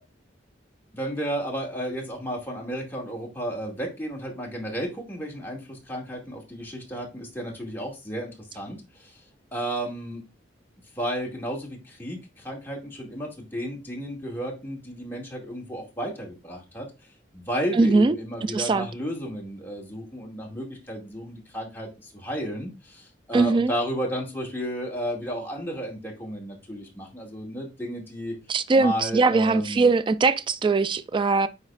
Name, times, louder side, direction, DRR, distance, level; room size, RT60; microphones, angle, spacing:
voice 1, 0.9-9.1 9.5-10.2 11.0-16.9 17.3-28.3 28.8-29.9, equal, 10° left, 2.2 m, -33 dB
voice 2, 17.7-18.2 18.4-18.9 23.3-23.7 28.5-31.5, right 3 dB, 25° right, 0.3 m, -21 dB
9.6 x 4.1 x 2.5 m
head